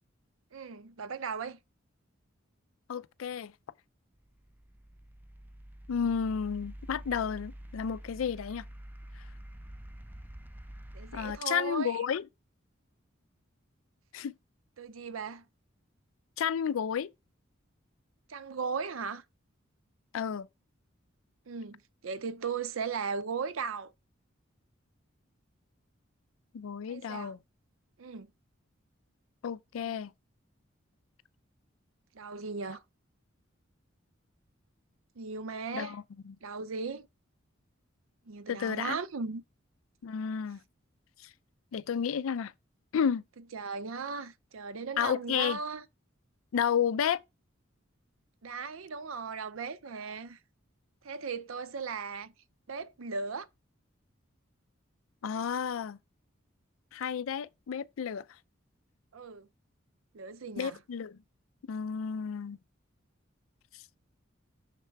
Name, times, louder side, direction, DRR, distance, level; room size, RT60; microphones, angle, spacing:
voice 1, 0.5-1.6 10.9-12.0 14.8-15.4 18.3-19.2 21.5-23.9 26.9-27.3 28.0-28.3 32.1-32.8 35.2-36.0 36.4-37.1 38.3-39.4 43.5-45.8 48.4-50.4 51.0-52.3 52.7-53.5 59.1-59.5 60.1-60.8, right 5 dB, 85° right, 0.6 m, -37 dB
voice 2, 2.9-3.5 5.9-8.6 9.2-9.3 11.1-12.2 14.1-14.3 16.4-17.1 20.1-20.5 26.5-27.4 29.4-30.1 35.7-36.4 38.5-39.0 40.0-40.6 41.2-41.3 41.7-42.5 42.9-43.2 45.0-45.6 46.5-47.2 55.2-56.0 56.9-58.2 60.6-61.2 61.7-62.6 63.7-63.8, left 7 dB, 85° left, 0.4 m, -32 dB
sound 1, 4.1-11.4, right 1 dB, 10° right, 0.4 m, -47 dB
6.6 x 3.3 x 4.5 m
head